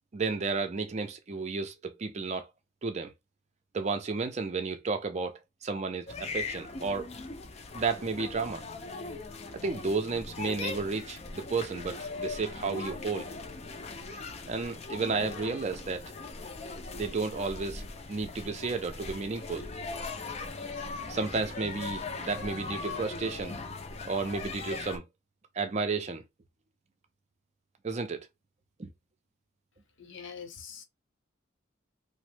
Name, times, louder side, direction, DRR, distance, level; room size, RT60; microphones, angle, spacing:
voice 1, 0.1-2.5 2.8-3.1 3.7-7.1 7.7-8.6 9.5-13.3 14.5-16.1 16.9-17.8 18.1-19.7 21.1-23.6 24.0-25.1 25.5-26.2 27.8-28.3 28.8-28.9, right 4 dB, 35° right, 0.4 m, -32 dB
sound 1, 6.1-25.0, left 4 dB, 30° left, 0.4 m, -40 dB
voice 2, 30.0-30.8, left 6 dB, 65° left, 0.8 m, -44 dB
3.0 x 2.1 x 3.1 m
head